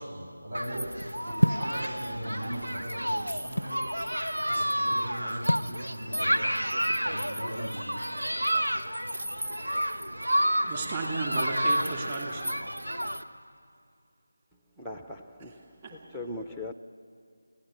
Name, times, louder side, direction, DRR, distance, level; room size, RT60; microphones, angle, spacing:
voice 1, 0.0-3.8 4.5-8.2, equal, 60° right, 7.3 m, -39 dB
Human group actions, 0.5-13.2, equal, 80° right, 1.2 m, -30 dB
sound 1, 1.4-1.8 2.6-3.8 5.5-5.8, left 1 dB, 85° left, 0.5 m, -26 dB
voice 2, 10.7-12.6 15.8-15.9, right 3 dB, 25° right, 2.5 m, -34 dB
voice 3, 14.8-15.5 16.1-16.7, left 2 dB, ahead, 0.5 m, -38 dB
29.5 x 17.0 x 8.5 m
figure-of-eight pair, 165°, 0 cm